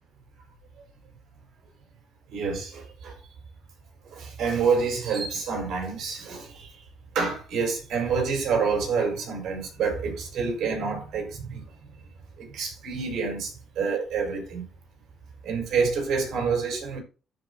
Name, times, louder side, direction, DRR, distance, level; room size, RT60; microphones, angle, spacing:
voice 1, 2.3-3.1 4.1-6.7 7.1-11.9 12.4-14.7 15.4-17.0, right 5 dB, 75° right, 4.5 m, -28 dB
14.0 x 5.5 x 2.7 m
cardioid pair, 90°, 0 cm